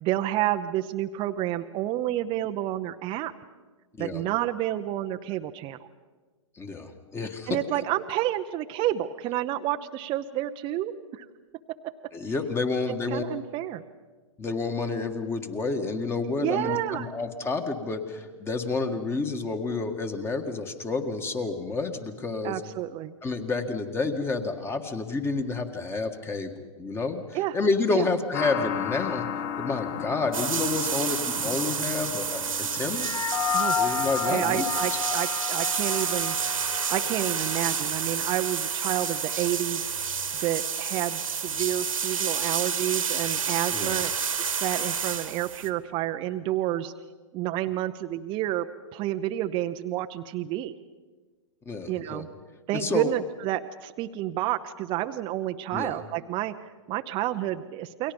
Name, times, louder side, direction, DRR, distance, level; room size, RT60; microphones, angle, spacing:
voice 1, 0.0-3.3 4.0-5.9 7.5-11.3 13.1-13.8 16.3-17.1 22.4-23.1 27.3-27.6 27.9-28.1 33.5-36.4 36.9-39.9 40.4-44.1 44.6-46.9 47.3-50.7 51.9-52.3 52.7-58.1, right 13 dB, 30° right, 7 dB, 0.8 m, -30 dB
voice 2, 6.6-7.6 12.1-13.2 14.4-22.6 23.2-29.3 29.6-33.1 33.8-34.7 43.7-44.0 51.7-52.2 52.7-53.1 55.7-56.0, left 3 dB, 15° left, 6 dB, 1.8 m, -29 dB
sound 1, 28.3-33.6, left 8 dB, 45° left, 1.7 m, -34 dB
sound 2, 30.3-45.7, right 6 dB, 85° right, 2.1 m, -29 dB
sound 3, 33.0-37.6, left 7 dB, 75° left, 0.9 m, -31 dB
29.0 x 22.5 x 5.3 m, 1.3 s
hypercardioid pair, 125°, 17 cm